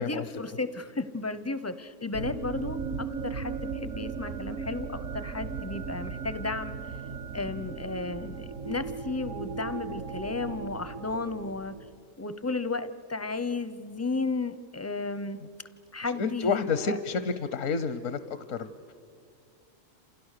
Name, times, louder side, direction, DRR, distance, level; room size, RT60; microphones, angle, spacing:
voice 1, 0.0-6.8 7.3-11.7 12.2-15.4 15.9-17.0, left 3 dB, 20° left, 13 dB, 0.4 m, -34 dB
sound 1, 2.1-11.9, right 5 dB, 70° right, 1.3 m, -37 dB
voice 2, 16.1-18.9, left 5 dB, 80° left, 11 dB, 1.2 m, -30 dB
28.5 x 28.0 x 6.6 m, 2.3 s
omnidirectional pair, 1.3 m